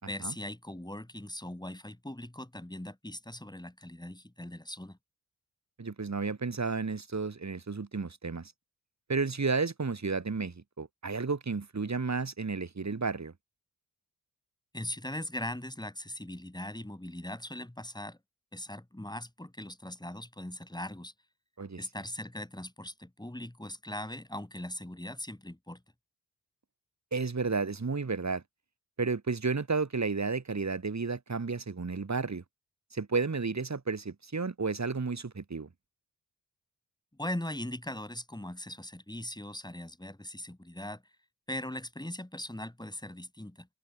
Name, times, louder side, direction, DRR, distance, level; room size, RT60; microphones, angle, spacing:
voice 1, 0.0-5.0 14.7-18.2 18.5-21.1 21.8-25.8 37.2-41.0 41.5-43.7, left 1 dB, 10° left, 6.4 m, -40 dB
voice 2, 5.8-8.5 9.1-13.3 21.6-21.8 27.1-28.4 29.0-32.4 32.9-35.7, right 4 dB, 45° right, 5.0 m, -32 dB
cardioid pair, 50°, 37 cm